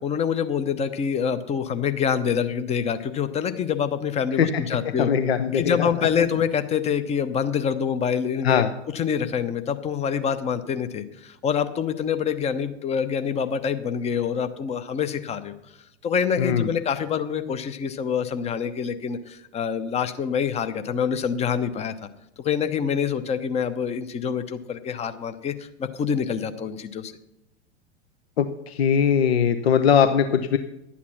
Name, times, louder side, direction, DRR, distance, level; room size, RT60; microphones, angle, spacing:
voice 1, 0.0-5.1 5.5-15.5 16.0-21.9 22.4-27.1, left 7 dB, 20° left, 10 dB, 0.8 m, -26 dB
voice 2, 5.0-5.9 8.4-8.7 16.4-16.7 28.4-30.6, left 7 dB, 65° left, 9 dB, 0.8 m, -20 dB
11.5 x 8.5 x 5.8 m, 0.88 s
figure-of-eight pair, 90°, 34 cm